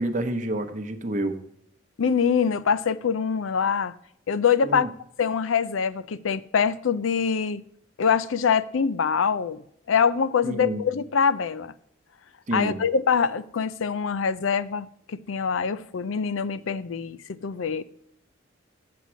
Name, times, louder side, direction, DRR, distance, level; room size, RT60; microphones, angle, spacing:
voice 1, 0.0-1.4 4.6-4.9 10.4-10.8 12.5-12.8, right 1 dB, 40° right, 0.9 m, -28 dB
voice 2, 2.0-3.9 4.3-4.9 5.2-7.6 8.0-9.6 9.9-11.7 12.5-17.8, left 6 dB, 85° left, 0.5 m, -24 dB
8.5 x 7.4 x 6.1 m
head